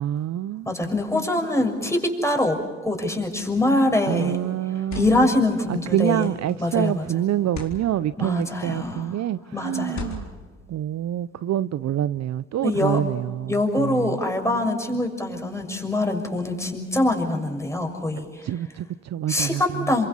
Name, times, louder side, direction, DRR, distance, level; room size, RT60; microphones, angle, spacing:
voice 1, 0.0-0.9 1.3-1.7 4.1-5.3 5.7-10.3 10.7-14.2 18.4-19.9, right 11 dB, 55° right, 0.6 m, -26 dB
voice 2, 0.7-4.4 4.9-6.3 6.6-7.0 8.2-9.1 9.5-10.2 12.6-13.0 13.5-18.4 19.3-20.1, left 2 dB, 10° left, 6.4 m, -24 dB
sound 1, 3.5-3.8 4.6-5.4 6.2-6.5 7.4-7.8 8.7-9.1 9.9-10.5, left 4 dB, 60° left, 4.4 m, -38 dB
27.5 x 24.0 x 5.6 m
supercardioid pair, 55°, 31 cm